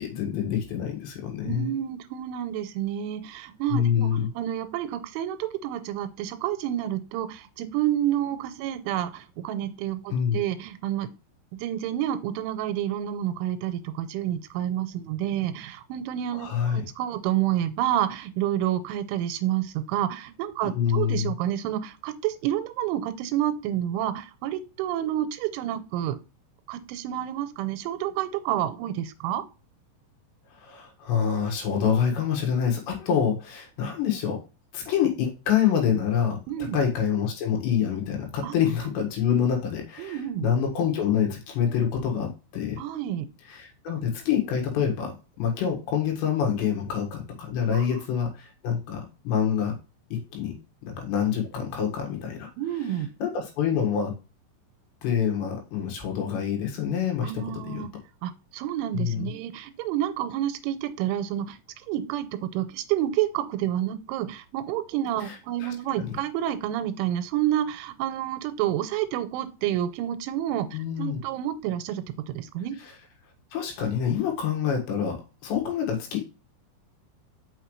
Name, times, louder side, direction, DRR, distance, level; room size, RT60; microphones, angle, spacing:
voice 1, 0.0-1.7 3.7-4.3 10.1-10.4 16.3-16.8 20.6-21.3 30.5-34.4 34.7-42.8 43.5-49.8 50.1-50.5 50.8-52.5 53.2-54.2 55.0-57.9 58.9-59.3 65.2-66.2 70.7-71.2 72.8-72.9 73.5-76.2, left 8 dB, 70° left, 1 dB, 3.7 m, -26 dB
voice 2, 1.4-4.1 4.4-11.1 11.5-26.2 26.7-29.4 36.5-36.8 38.4-38.6 40.0-40.5 42.8-43.3 47.7-48.0 52.6-53.1 57.2-57.9 58.2-61.6 61.9-72.8, right 12 dB, 85° right, 10 dB, 3.2 m, -29 dB
6.4 x 5.7 x 3.1 m, 0.31 s
omnidirectional pair, 5.4 m